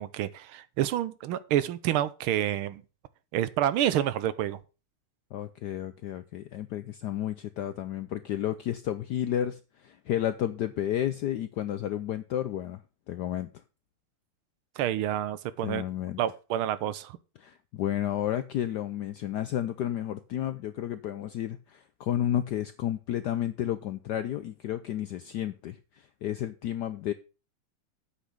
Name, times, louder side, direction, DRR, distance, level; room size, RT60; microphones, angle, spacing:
voice 1, 0.0-2.8 3.3-4.6 14.8-15.8 16.2-17.2, right 12 dB, 80° right, 1.5 m, -28 dB
voice 2, 5.3-12.8 13.1-13.5 15.6-16.2 17.4-27.1, left 11 dB, 80° left, 0.9 m, -32 dB
8.3 x 5.8 x 6.5 m
omnidirectional pair, 2.4 m